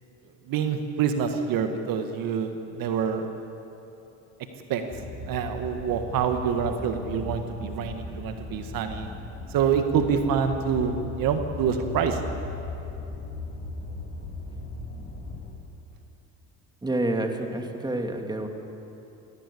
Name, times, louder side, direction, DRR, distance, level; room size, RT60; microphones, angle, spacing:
voice 1, 0.5-3.3 4.7-4.8 5.2-9.1 9.5-12.2, right 7 dB, 65° right, 6 dB, 1.7 m, -26 dB
sound 1, 4.9-15.5, left 3 dB, 30° left, 5.0 m, -37 dB
voice 2, 16.8-18.5, right 1 dB, 10° right, 4 dB, 2.3 m, -28 dB
18.0 x 15.5 x 9.9 m, 3.0 s
supercardioid pair, 85°, 36 cm